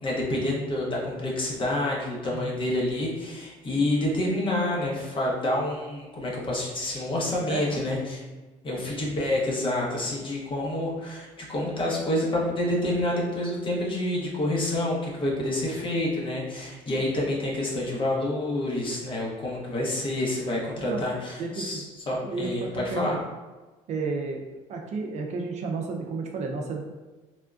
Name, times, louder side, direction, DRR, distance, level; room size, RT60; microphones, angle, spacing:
voice 1, 0.0-8.2 8.6-23.2, left 1 dB, 35° left, -3 dB, 1.0 m, -28 dB
voice 2, 21.4-21.9 22.2-23.2 23.9-24.4 24.7-26.8, right 4 dB, 55° right, 2 dB, 0.5 m, -32 dB
3.6 x 2.2 x 2.5 m, 1.2 s
supercardioid pair, 85°, 14 cm